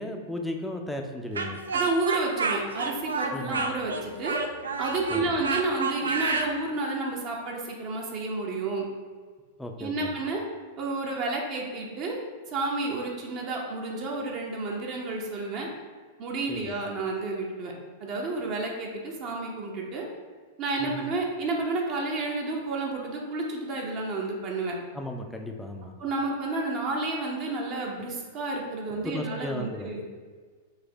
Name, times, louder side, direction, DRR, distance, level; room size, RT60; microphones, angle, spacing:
voice 1, 0.0-1.6 3.3-3.7 5.1-5.4 9.6-10.1 16.5-16.8 20.8-21.1 24.9-25.9 29.0-29.9, left 1 dB, 5° left, 3 dB, 0.5 m, -35 dB
Speech, 1.3-6.5, right 4 dB, 75° right, 0.4 m, -29 dB
voice 2, 1.7-4.4 4.8-8.9 9.8-10.4 10.8-12.2 12.5-15.7 16.2-17.7 18.0-20.0 20.6-24.8 26.0-30.0, right 3 dB, 40° right, -1 dB, 0.7 m, -31 dB
4.0 x 2.7 x 3.9 m, 1.5 s
figure-of-eight pair, 95°, 0 cm